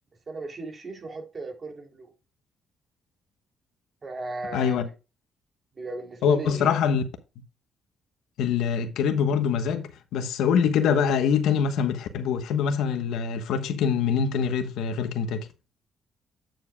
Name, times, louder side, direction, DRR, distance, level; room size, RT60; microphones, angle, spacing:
voice 1, 0.3-2.1 4.0-4.9 5.8-6.7, right 2 dB, 40° right, 3.3 m, -36 dB
voice 2, 4.5-4.9 6.2-7.0 8.4-15.5, left 7 dB, 85° left, 1.2 m, -24 dB
9.0 x 7.4 x 2.4 m
cardioid pair, 90°, 0 cm